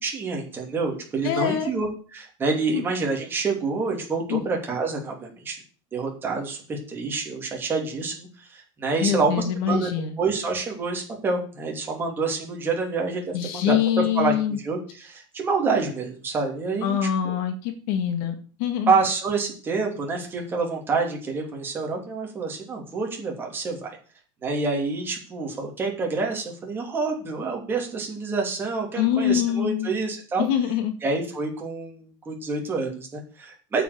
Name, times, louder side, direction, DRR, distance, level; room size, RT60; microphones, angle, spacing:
voice 1, 0.0-5.6 5.9-9.9 10.2-13.8 14.2-14.3 14.6-17.0 17.2-17.3 18.9-24.0 24.4-30.5 31.0-33.8, right 4 dB, 15° right, 0 dB, 2.9 m, -27 dB
voice 2, 1.2-1.7 2.7-2.8 4.3-4.4 9.0-10.2 13.3-14.6 16.8-18.9 29.0-29.9 30.4-30.9, left 9 dB, 60° left, 7 dB, 1.9 m, -24 dB
9.1 x 6.1 x 8.4 m, 0.40 s
supercardioid pair, 170°, 13 cm